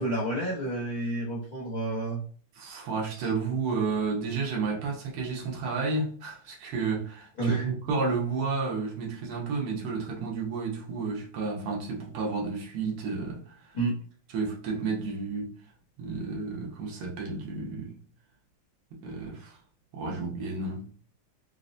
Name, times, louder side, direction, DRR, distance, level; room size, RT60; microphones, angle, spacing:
voice 1, 0.0-2.2 3.1-3.3 7.4-7.7 13.7-14.0, right 2 dB, 65° left, 0.4 m, -30 dB
voice 2, 2.6-13.5 14.3-15.6 16.0-18.0 18.9-19.6 19.9-20.9, right 4 dB, 90° right, 1.9 m, -31 dB
4.7 x 2.1 x 2.5 m
omnidirectional pair, 2.4 m